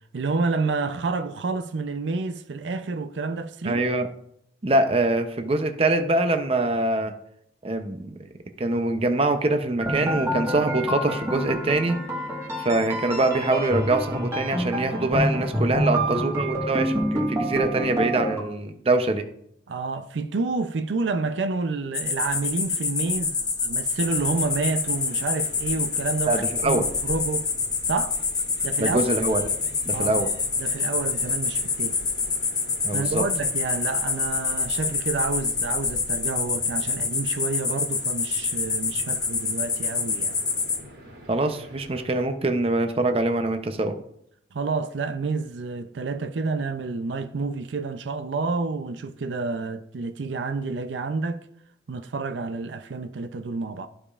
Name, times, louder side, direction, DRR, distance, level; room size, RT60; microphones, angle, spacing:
voice 1, 0.1-3.8 15.7-16.2 19.7-27.5 27.9-28.2 28.6-29.1 29.9-30.3 30.6-32.0 32.9-40.3 44.5-51.4 51.9-53.9, right 4 dB, 90° right, 0.5 m, -29 dB
voice 2, 3.6-4.1 4.6-7.1 7.6-8.2 8.6-12.0 12.6-19.2 26.3-26.8 28.8-29.5 29.9-30.3 32.8-33.2 41.3-43.9, right 2 dB, 35° right, 0.6 m, -24 dB
sound 1, 9.8-18.4, equal, 15° right, 1.5 m, -27 dB
sound 2, 21.9-40.8, left 5 dB, 20° left, 0.9 m, -27 dB
sound 3, 24.0-42.2, equal, 70° right, 2.9 m, -47 dB
13.5 x 5.0 x 2.4 m
head